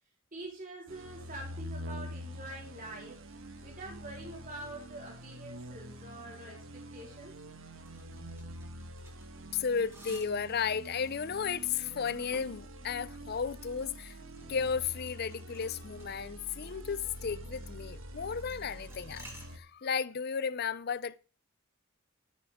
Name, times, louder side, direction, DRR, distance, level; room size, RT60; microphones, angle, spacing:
voice 1, 0.3-3.2 3.6-7.4, right 1 dB, 40° right, 3.9 m, -45 dB
sound 1, 0.9-19.6, equal, 70° right, 1.4 m, -46 dB
sound 2, 7.9-19.5, right 1 dB, 15° right, 2.8 m, -57 dB
voice 2, 9.5-14.2 14.5-21.2, left 6 dB, 50° left, 0.5 m, -34 dB
13.0 x 9.5 x 3.6 m
head